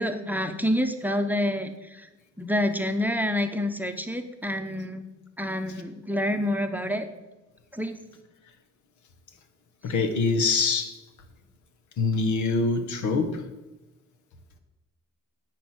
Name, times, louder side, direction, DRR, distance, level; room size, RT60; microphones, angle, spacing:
voice 1, 0.0-2.1 2.4-5.0 5.4-7.1 7.7-7.9, left 1 dB, 5° right, 6 dB, 0.8 m, -27 dB
voice 2, 9.8-10.9 12.0-13.4, left 4 dB, 75° left, 8 dB, 1.3 m, -24 dB
10.0 x 4.7 x 7.9 m, 1.1 s
cardioid pair, 90°, 30 cm